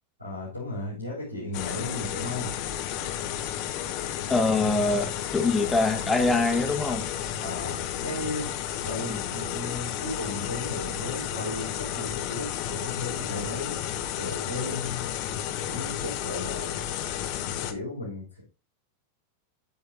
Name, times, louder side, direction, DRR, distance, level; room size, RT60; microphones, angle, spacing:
voice 1, 0.2-2.5 7.4-15.1 15.7-16.8 17.7-18.4, left 2 dB, 90° right, -9 dB, 4.3 m, -35 dB
sound 1, 1.5-17.7, left 10 dB, 45° left, 0.9 m, -32 dB
voice 2, 4.3-7.1 9.1-9.2, left 3 dB, 10° left, 5 dB, 1.5 m, -24 dB
9.3 x 7.2 x 2.5 m, 0.32 s
figure-of-eight pair, 90°, 0 cm